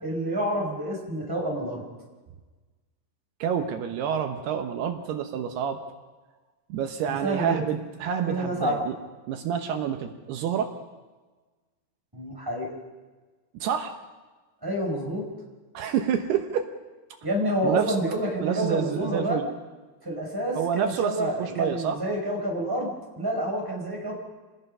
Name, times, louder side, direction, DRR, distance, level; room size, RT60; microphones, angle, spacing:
voice 1, 0.0-1.8 7.1-7.6 8.2-8.8 12.1-12.7 14.6-15.2 17.2-19.4 20.0-24.2, right 1 dB, 5° right, -1 dB, 4.9 m, -28 dB
voice 2, 3.4-5.8 6.7-8.9 9.3-10.7 13.5-13.9 15.7-16.7 17.6-18.0 18.4-19.4 20.6-22.0, right 8 dB, 75° right, 5 dB, 3.1 m, -28 dB
28.5 x 20.0 x 5.5 m, 1.3 s
omnidirectional pair, 4.7 m